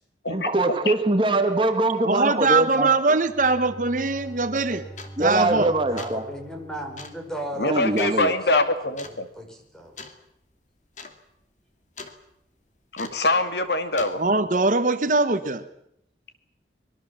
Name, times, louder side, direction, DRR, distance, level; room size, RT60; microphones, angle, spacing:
voice 1, 0.3-3.2 5.2-6.3 7.7-8.3, right 2 dB, 30° right, 6 dB, 1.6 m, -23 dB
voice 2, 2.0-4.9 5.2-5.7 14.2-15.7, right 3 dB, 45° right, 10 dB, 1.2 m, -22 dB
Bowed string instrument, 3.0-8.0, right 1 dB, 20° left, 3.4 m, -44 dB
sound 1, 4.1-4.2 5.0-5.3 5.8-6.3 7.0-7.2 8.0-8.2 9.0-9.2 10.0-10.2 10.5-10.6 10.9-11.2 11.4-12.2 13.0-13.3 14.0-14.2, left 4 dB, 40° left, 2.6 m, -41 dB
voice 3, 5.9-8.3 9.1-10.0, right 1 dB, 5° left, 3 dB, 5.3 m, -36 dB
voice 4, 7.6-9.3 12.9-14.2, left 2 dB, 70° left, 8 dB, 2.5 m, -24 dB
24.5 x 22.5 x 7.3 m, 0.77 s
head